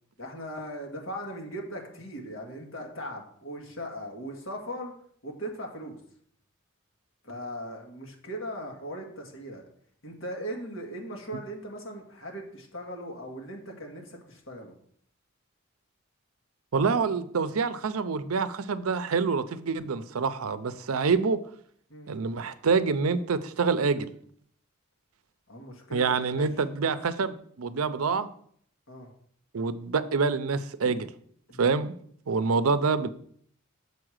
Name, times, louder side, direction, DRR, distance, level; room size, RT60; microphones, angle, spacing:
voice 1, 0.2-4.9 5.2-6.0 7.2-9.6 10.0-14.7 21.9-22.1 25.5-26.5 28.9-29.1 30.8-30.9 31.5-31.7, equal, 65° left, 1 dB, 1.9 m, -39 dB
voice 2, 16.7-21.4 22.1-24.1 25.9-28.3 29.5-31.0 31.6-31.9 32.3-33.1, right 5 dB, 85° right, 13 dB, 0.6 m, -26 dB
6.8 x 4.8 x 6.4 m, 0.62 s
head